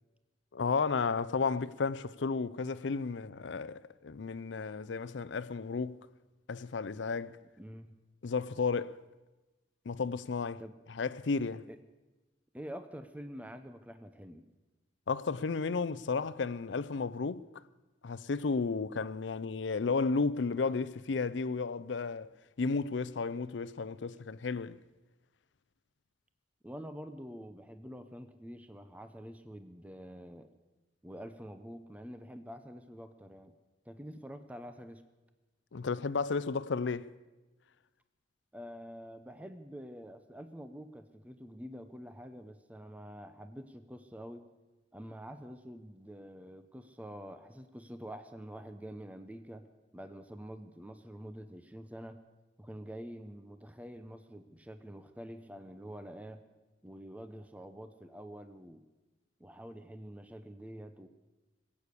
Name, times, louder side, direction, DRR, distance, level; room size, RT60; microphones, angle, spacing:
voice 1, 0.5-6.0 6.5-7.3 8.2-9.0 9.9-10.6 10.9-11.6 15.1-17.4 18.0-22.3 22.6-24.8 35.7-37.1, left 4 dB, 70° left, 0.5 m, -33 dB
voice 2, 7.6-7.9 10.6-10.8 11.7-11.8 12.5-14.4 26.6-30.5 31.0-33.5 33.9-35.0 38.5-44.5 44.9-49.7 49.9-52.2 52.6-56.4 56.8-58.8 59.4-61.1, equal, 10° right, 0.7 m, -47 dB
20.5 x 8.6 x 8.3 m
head